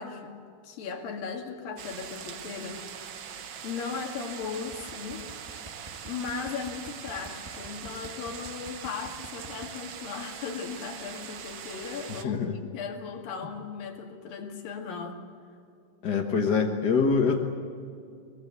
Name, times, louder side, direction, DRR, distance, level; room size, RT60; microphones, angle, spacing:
voice 1, 0.0-2.8 3.6-5.2 6.0-15.2, left 5 dB, 90° left, 3 dB, 3.9 m, -37 dB
sound 1, 1.8-12.2, right 7 dB, 70° right, 1.1 m, -42 dB
sound 2, 4.7-9.7, right 1 dB, 20° right, 0.6 m, -46 dB
voice 2, 12.2-12.5 16.0-17.4, left 5 dB, 50° left, 2 dB, 1.2 m, -24 dB
23.5 x 23.0 x 8.1 m, 2.4 s
omnidirectional pair, 3.9 m